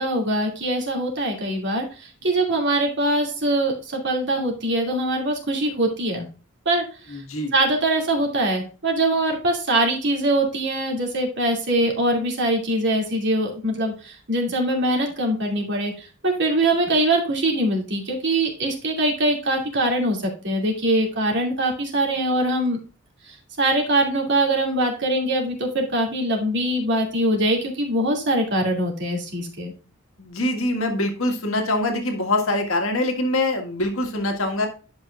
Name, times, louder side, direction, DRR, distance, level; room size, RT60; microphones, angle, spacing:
voice 1, 0.0-6.2 6.7-7.2 7.5-22.8 23.3-29.7, right 1 dB, 60° right, 1 dB, 2.5 m, -23 dB
voice 2, 7.1-7.5 30.2-34.7, left 1 dB, 75° left, 4 dB, 1.8 m, -24 dB
10.5 x 5.6 x 2.4 m, 0.35 s
head